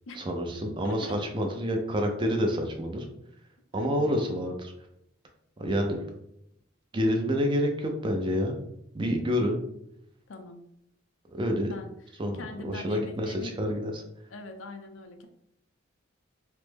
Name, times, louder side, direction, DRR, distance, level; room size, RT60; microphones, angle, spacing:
voice 1, 0.2-3.0 3.7-4.7 5.6-6.0 6.9-8.6 8.9-9.6 11.3-11.7 12.2-13.9, equal, 25° right, 3 dB, 0.4 m, -28 dB
voice 2, 0.8-1.3 3.8-4.1 10.3-10.6 11.5-13.6 14.3-15.3, left 2 dB, 80° left, 6 dB, 0.5 m, -42 dB
3.2 x 2.0 x 3.3 m, 0.76 s
head